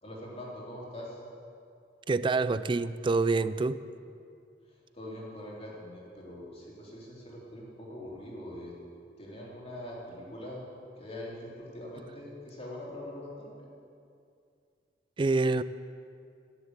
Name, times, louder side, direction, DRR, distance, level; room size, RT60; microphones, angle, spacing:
voice 1, 0.0-1.2 4.7-8.7 9.2-10.6 11.0-13.7, left 1 dB, 35° left, -5 dB, 3.6 m, -43 dB
voice 2, 2.1-3.8 15.2-15.6, right 3 dB, 30° right, 15 dB, 0.4 m, -26 dB
11.0 x 11.0 x 8.1 m, 2.4 s
head